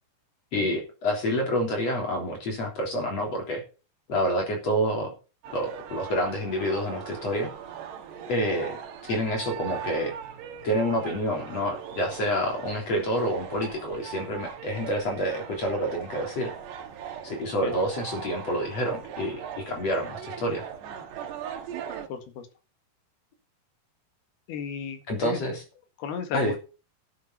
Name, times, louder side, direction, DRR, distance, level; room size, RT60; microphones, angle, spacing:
voice 1, 0.5-3.6 4.1-5.1 5.5-7.5 8.3-8.8 9.0-10.1 10.6-16.5 17.2-20.6 25.1-25.6 26.3-26.6, equal, 40° left, 2 dB, 4.4 m, -28 dB
sound 1, 5.4-22.1, right 8 dB, 80° right, 3.8 m, -40 dB
voice 2, 22.1-22.5 24.5-25.5 26.0-26.6, left 6 dB, 70° left, 7 dB, 3.8 m, -34 dB
12.5 x 8.0 x 5.7 m, 0.33 s
omnidirectional pair, 4.8 m